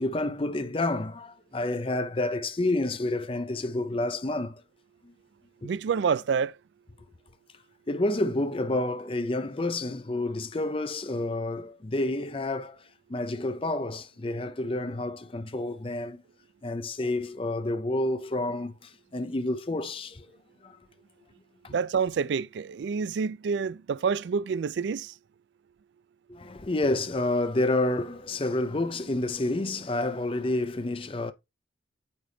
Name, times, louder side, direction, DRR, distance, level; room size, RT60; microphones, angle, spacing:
voice 1, 0.0-4.6 5.0-5.1 7.9-12.8 13.1-16.2 16.6-20.3 20.6-20.8 21.6-21.7 26.3-31.3, left 2 dB, 30° left, 0.5 m, -29 dB
voice 2, 5.6-6.5 21.7-25.1, right 6 dB, 75° right, 0.4 m, -28 dB
8.7 x 3.4 x 3.9 m
head